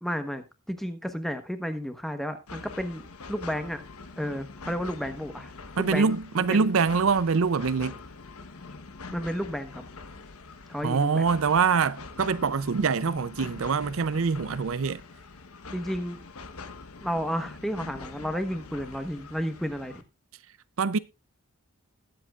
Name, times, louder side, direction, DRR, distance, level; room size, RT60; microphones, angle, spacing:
voice 1, 0.0-3.8 4.2-6.7 9.1-9.8 10.7-11.2 15.7-16.2 17.0-20.0, equal, ahead, 1.0 m, -32 dB
sound 1, 2.5-20.0, left 3 dB, 80° left, 1.2 m, -44 dB
voice 2, 5.8-7.9 10.8-15.0 20.8-21.0, right 5 dB, 65° right, 0.5 m, -24 dB
20.5 x 7.7 x 2.4 m
head